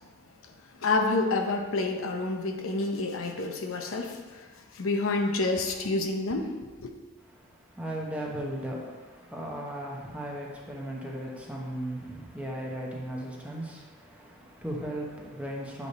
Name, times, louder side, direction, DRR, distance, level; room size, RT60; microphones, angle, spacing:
voice 1, 0.8-6.9, left 3 dB, 90° left, 0.7 m, -29 dB
voice 2, 7.2-15.9, right 1 dB, 5° right, 1.0 m, -37 dB
8.4 x 3.5 x 4.1 m
head